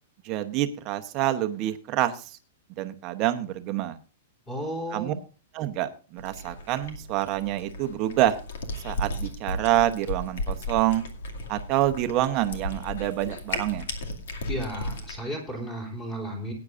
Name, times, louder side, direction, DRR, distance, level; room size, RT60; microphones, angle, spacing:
voice 1, 0.2-2.4 2.8-4.0 4.9-5.1 5.5-8.4 8.8-11.0 11.5-13.9, right 13 dB, 25° right, 8 dB, 0.9 m, -27 dB
voice 2, 4.5-5.2 14.5-16.5, equal, 15° left, 1 dB, 3.2 m, -33 dB
Cat, 6.2-15.2, left 1 dB, 65° left, 2.3 m, -35 dB
18.5 x 9.6 x 2.5 m, 0.35 s
supercardioid pair, 180°, 0 cm